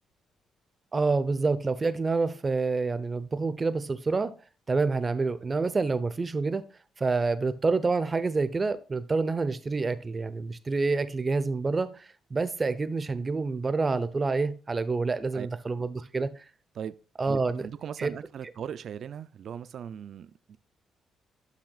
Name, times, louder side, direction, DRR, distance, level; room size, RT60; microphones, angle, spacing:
voice 1, 0.9-4.3 4.7-6.6 7.0-16.3 17.2-17.6 18.0-18.1, right 3 dB, 30° right, 0.8 m, -27 dB
voice 2, 17.3-20.6, right 8 dB, 60° right, 0.4 m, -39 dB
12.0 x 5.8 x 2.4 m
cardioid pair, 90°, 0 cm